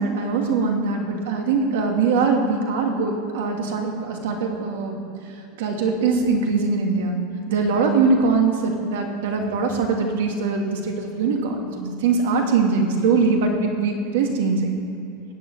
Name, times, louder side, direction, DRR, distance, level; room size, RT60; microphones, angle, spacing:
voice 1, 0.0-5.0 5.6-7.2 7.5-14.7, right 4 dB, 75° right, 2 dB, 2.5 m, -22 dB
14.5 x 7.2 x 9.2 m, 2.8 s
supercardioid pair, 170°, 0 cm